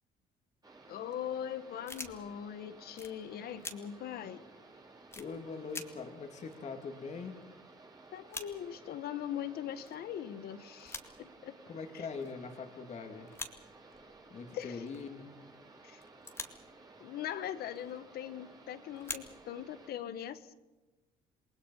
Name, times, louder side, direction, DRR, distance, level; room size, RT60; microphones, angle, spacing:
sound 1, 0.6-19.9, right 3 dB, 25° right, 3.8 m, -56 dB
voice 1, 0.9-4.4 8.1-11.5 11.9-12.1 14.5-14.8 15.8-16.0 17.0-20.5, left 10 dB, 65° left, 12 dB, 1.4 m, -41 dB
sound 2, 0.9-1.1 1.8-2.5 3.0-3.1 3.6-3.7 4.2-4.3 5.1-5.3 5.7-5.8 6.1-6.2 6.4-7.4 7.7-7.8 8.0-8.5 9.3-9.4 9.8-10.0 10.7-11.1 12.2-12.5 13.3-13.5 13.8-14.4 14.8-15.2 16.0-16.7 17.7-18.0 18.9-19.7, left 2 dB, 15° left, 2.2 m, -44 dB
voice 2, 5.2-7.4 11.7-13.3 14.3-15.3, left 5 dB, 40° left, 4 dB, 2.7 m, -42 dB
28.0 x 20.5 x 5.6 m, 1.1 s
cardioid pair, 110°, 17 cm